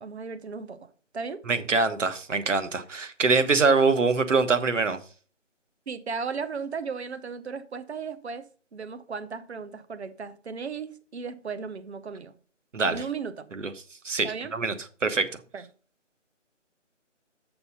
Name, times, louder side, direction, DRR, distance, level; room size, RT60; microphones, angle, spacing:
voice 1, 0.0-0.9 1.1-1.4 5.9-12.3 12.9-13.5 14.2-14.5 15.5-15.6, right 5 dB, 60° right, 0.9 m, -36 dB
voice 2, 1.5-5.0 12.7-13.0 13.5-13.7 14.0-14.7 15.0-15.3, right 4 dB, 75° right, 1.2 m, -24 dB
6.8 x 6.6 x 5.5 m
figure-of-eight pair, 170°, 37 cm